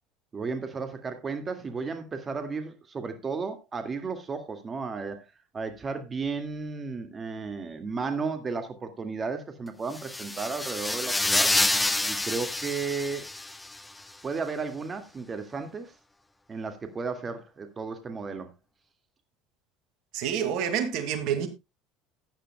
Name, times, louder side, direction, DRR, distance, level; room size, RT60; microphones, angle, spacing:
voice 1, 0.3-5.2 5.5-11.5 12.1-13.3 14.2-15.9 16.5-18.5, right 4 dB, 30° right, 2.0 m, -34 dB
sound 1, 9.9-13.8, left 2 dB, 10° left, 0.9 m, -28 dB
voice 2, 20.1-21.5, right 8 dB, 65° right, 2.3 m, -28 dB
16.0 x 10.0 x 2.3 m
hypercardioid pair, 75°, 0 cm